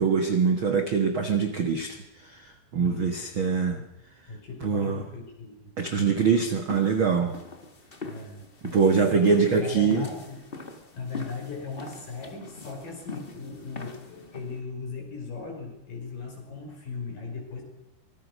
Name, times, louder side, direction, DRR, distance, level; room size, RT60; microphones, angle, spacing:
voice 1, 0.0-3.8 4.6-5.0 5.8-7.3 8.6-10.1, right 5 dB, 60° right, 7 dB, 1.3 m, -24 dB
voice 2, 2.8-3.2 3.7-3.9 4.3-5.7 8.1-10.5 10.9-17.6, left 4 dB, 55° left, 2 dB, 7.1 m, -38 dB
sound 1, 6.2-14.6, left 3 dB, 85° left, 0.5 m, -43 dB
24.5 x 19.5 x 6.3 m, 0.89 s
omnidirectional pair, 4.6 m